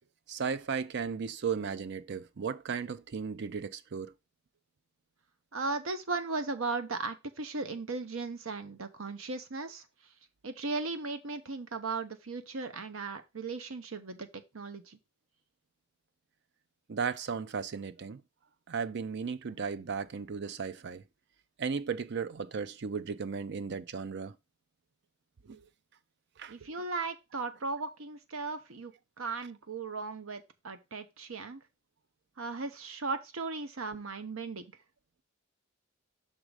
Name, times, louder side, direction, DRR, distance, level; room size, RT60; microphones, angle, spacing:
voice 1, 0.3-4.1 16.9-18.2 18.7-21.0 21.6-24.4 25.5-25.6 26.4-26.7, right 5 dB, 55° right, 0.5 m, -35 dB
voice 2, 5.5-9.8 10.4-15.0 26.5-31.6 32.4-34.7, right 3 dB, 75° right, 0.9 m, -37 dB
6.3 x 3.8 x 4.8 m
head